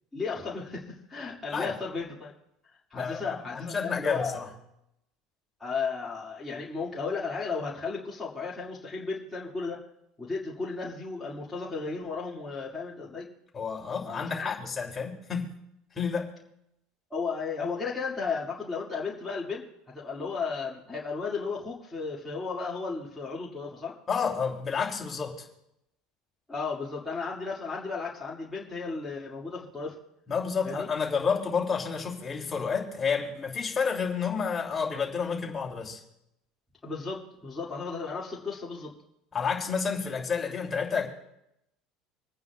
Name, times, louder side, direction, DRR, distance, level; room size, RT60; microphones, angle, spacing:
voice 1, 0.1-2.3 2.9-4.4 5.6-9.8 10.2-13.3 14.0-14.5 17.1-19.7 19.9-23.9 26.5-30.0 30.6-30.9 36.8-38.9, left 4 dB, 10° left, -7 dB, 2.4 m, -34 dB
voice 2, 2.9-3.2 3.5-4.5 13.5-15.5 15.9-16.3 24.1-25.5 30.3-36.0 39.3-41.1, left 5 dB, 25° left, -1 dB, 2.9 m, -30 dB
27.0 x 9.4 x 2.4 m, 0.81 s
supercardioid pair, 110°, 0 cm